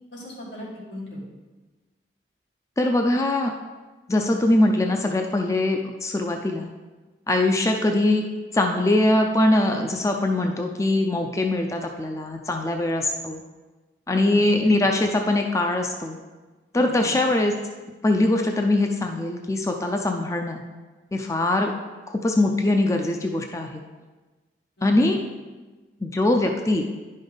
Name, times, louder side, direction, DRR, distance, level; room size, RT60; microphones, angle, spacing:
voice 1, 0.1-1.2 14.1-14.4 16.7-17.1 24.8-25.0, left 1 dB, 90° left, -6 dB, 2.8 m, -38 dB
voice 2, 2.8-3.5 4.1-6.7 7.3-8.3 8.5-13.4 14.1-16.2 16.7-17.6 18.0-20.6 21.1-21.7 22.1-23.8 24.8-25.2 26.0-26.9, left 2 dB, 15° left, 3 dB, 0.4 m, -22 dB
10.5 x 5.4 x 3.9 m, 1.3 s
head